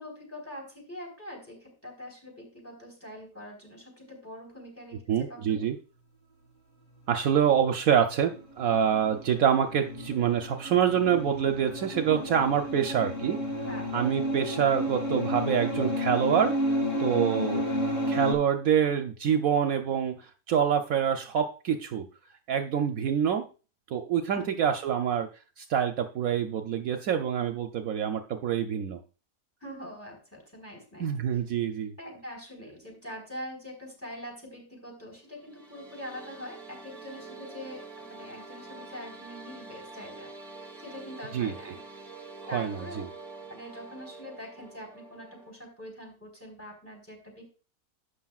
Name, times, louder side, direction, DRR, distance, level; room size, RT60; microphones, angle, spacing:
voice 1, 0.0-5.7 13.6-13.9 24.3-24.5 29.6-31.4 32.0-40.3 40.8-41.8 42.5-43.0 43.5-47.5, equal, 10° left, 1 dB, 4.1 m, -44 dB
voice 2, 5.1-5.8 7.1-13.4 13.9-16.6 17.0-17.7 18.1-20.2 20.5-22.1 22.5-23.5 23.9-25.3 25.6-29.0 31.0-31.9 41.3-41.5 42.5-43.1, right 8 dB, 70° right, 5 dB, 1.1 m, -26 dB
sound 1, 8.0-18.3, left 1 dB, 55° left, 2.8 m, -32 dB
sound 2, 35.3-45.5, right 3 dB, 25° right, 1.4 m, -46 dB
11.5 x 8.5 x 2.4 m, 0.35 s
omnidirectional pair, 1.6 m